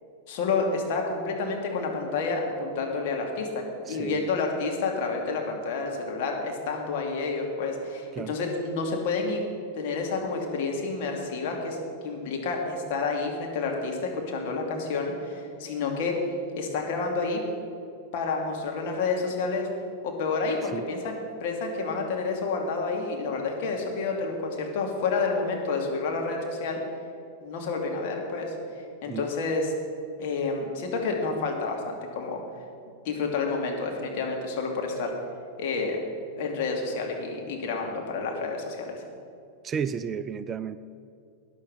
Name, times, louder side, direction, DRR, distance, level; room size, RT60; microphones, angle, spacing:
voice 1, 0.3-9.4 9.8-11.8 12.0-16.2 16.6-17.4 18.1-19.7 20.0-26.8 27.4-28.5 29.0-29.7 30.2-32.4 33.0-35.1 35.6-36.0 36.4-39.0, left 4 dB, 50° left, 1 dB, 2.6 m, -29 dB
voice 2, 3.9-4.3 8.1-8.4 20.7-20.9 29.1-29.3 39.6-40.8, right 7 dB, 25° right, 13 dB, 0.4 m, -32 dB
12.5 x 9.8 x 7.8 m, 2.4 s
figure-of-eight pair, 90°, 0 cm